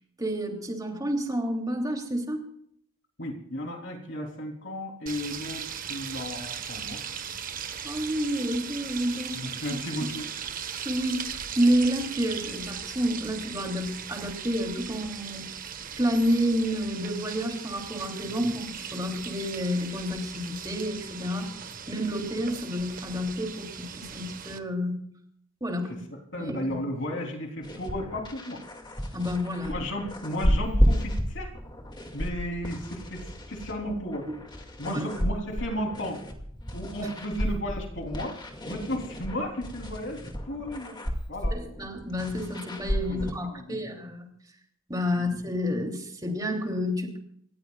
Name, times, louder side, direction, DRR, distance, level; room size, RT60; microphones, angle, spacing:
voice 1, 0.2-2.4 7.8-9.4 10.8-15.5 16.0-21.5 21.9-25.0 25.6-25.9 26.3-26.8 27.1-27.2 29.1-29.8 34.8-35.0 37.0-37.1 41.5-44.3 44.9-47.2, equal, 15° right, 1 dB, 3.1 m, -29 dB
voice 2, 3.2-7.0 9.3-10.3 25.9-26.0 26.3-28.6 29.7-31.5 32.1-34.3 34.8-36.3 36.7-38.4 38.7-41.0 41.3-41.6 43.1-43.2 43.4-43.8 45.1-45.2, equal, 55° left, 2 dB, 3.5 m, -34 dB
sound 1, 5.1-24.6, right 7 dB, 40° right, 1.2 m, -38 dB
sound 2, 27.6-43.3, equal, 20° left, 2.3 m, -31 dB
28.5 x 15.0 x 2.4 m, 0.68 s
head